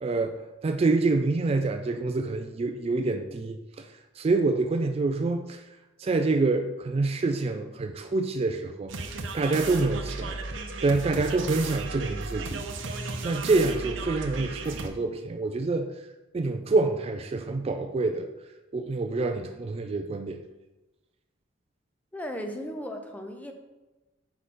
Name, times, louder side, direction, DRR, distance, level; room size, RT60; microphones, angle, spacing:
voice 1, 0.0-0.4 0.6-3.9 4.2-5.7 6.0-8.9 9.3-10.4 10.8-12.6 13.2-15.9 16.3-18.3 18.7-20.4, right 3 dB, 30° right, 6 dB, 0.3 m, -26 dB
sound 1, 8.9-14.9, right 3 dB, 85° right, 0.7 m, -35 dB
voice 2, 22.1-23.5, equal, 10° left, 4 dB, 0.6 m, -36 dB
5.8 x 4.8 x 4.2 m, 1.1 s
head